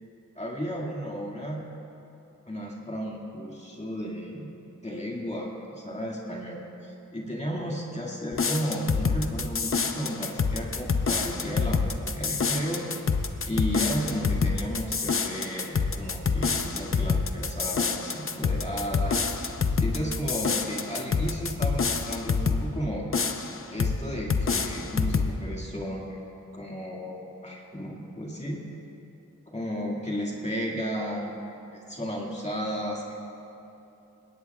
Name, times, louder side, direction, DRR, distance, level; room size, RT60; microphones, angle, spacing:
voice 1, 0.4-1.7 2.5-4.5 4.8-12.8 13.5-19.2 19.8-23.1 23.7-26.2 26.5-28.6 29.5-31.4 31.7-33.1, equal, 20° left, -3 dB, 2.0 m, -33 dB
sound 1, 8.3-22.7 23.1-24.0 24.3-25.3, left 5 dB, 40° left, 0.8 m, -27 dB
20.5 x 17.5 x 2.4 m, 2.9 s
cardioid pair, 65°, 32 cm